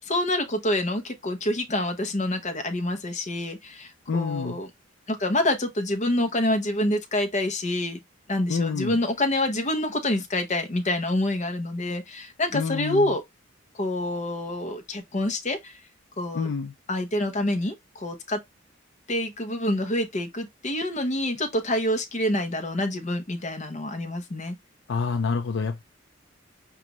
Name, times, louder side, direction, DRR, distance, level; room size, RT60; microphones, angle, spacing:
voice 1, 0.0-4.7 5.1-8.0 8.3-13.2 13.7-15.8 16.2-16.5 16.9-18.4 19.1-24.6, left 1 dB, 40° left, 0.8 m, -27 dB
voice 2, 4.1-4.6 8.5-9.0 12.5-13.1 16.3-16.7 24.9-25.8, left 5 dB, 65° left, 0.4 m, -27 dB
5.1 x 2.4 x 2.9 m
head